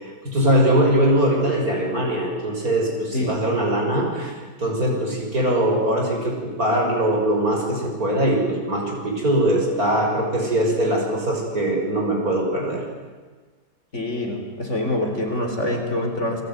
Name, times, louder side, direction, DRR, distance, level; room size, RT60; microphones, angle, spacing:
voice 1, 0.3-12.8, right 1 dB, 55° right, 1 dB, 6.9 m, -21 dB
voice 2, 13.9-16.4, left 1 dB, 40° left, 3 dB, 4.4 m, -25 dB
29.5 x 21.0 x 9.7 m, 1.4 s
omnidirectional pair, 1.9 m